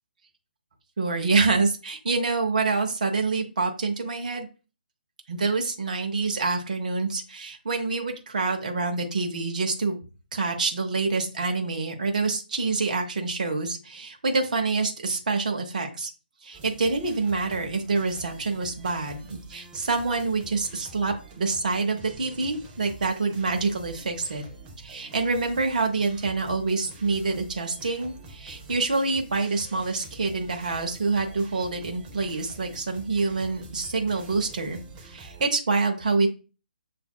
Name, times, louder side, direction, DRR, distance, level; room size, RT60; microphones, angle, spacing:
voice 1, 1.0-4.5 5.3-10.0 10.3-16.1 16.4-24.4 24.8-34.8 35.1-36.3, right 3 dB, 55° right, 3 dB, 0.7 m, -26 dB
sound 1, 16.5-35.5, right 3 dB, 15° right, 0.5 m, -46 dB
6.8 x 2.6 x 2.2 m, 0.33 s
figure-of-eight pair, 140°, 5 cm